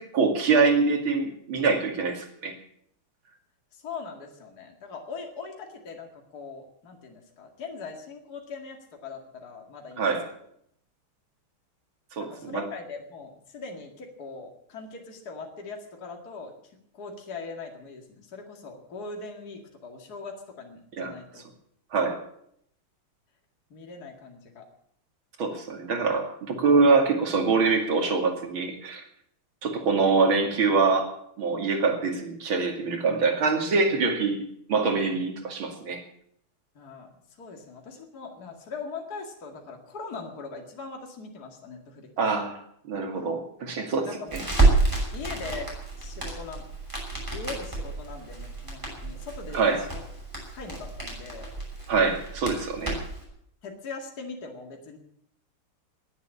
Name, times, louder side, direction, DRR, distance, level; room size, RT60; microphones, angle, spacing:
voice 1, 0.0-2.5 10.0-10.3 12.1-12.7 21.0-21.1 21.9-22.2 25.4-29.0 29.6-34.4 34.7-36.0 42.2-42.6 42.8-44.4 49.5-49.8 51.9-53.0, right 4 dB, 65° right, 4 dB, 3.2 m, -24 dB
voice 2, 3.7-10.1 12.2-16.5 16.9-21.4 23.7-24.7 36.7-37.1 37.4-42.1 44.1-44.5 45.1-45.7 46.0-46.7 47.3-49.9 50.5-51.5 53.6-55.0, left 4 dB, 45° left, 2 dB, 2.6 m, -40 dB
Crackle, 44.3-53.2, right 3 dB, 10° right, 6.1 m, -29 dB
20.0 x 8.2 x 8.5 m, 0.69 s
omnidirectional pair, 2.4 m